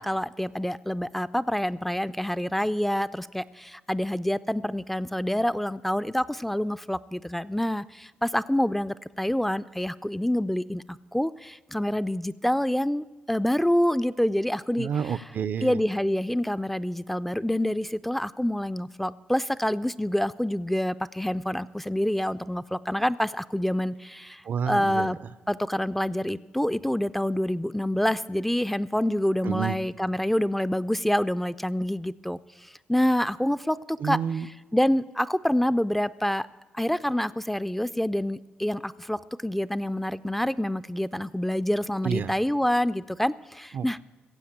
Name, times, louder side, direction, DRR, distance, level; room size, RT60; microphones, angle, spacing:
voice 1, 0.0-15.2 15.6-25.2 25.5-34.2 34.7-36.5 36.7-44.0, left 1 dB, 5° left, 13 dB, 0.4 m, -27 dB
voice 2, 14.8-15.8 24.4-25.1 29.4-29.8 34.0-34.5 42.0-42.3 43.7-44.0, right 7 dB, 60° right, 15 dB, 0.5 m, -29 dB
16.0 x 7.4 x 8.6 m, 1.2 s
cardioid pair, 80°, 4 cm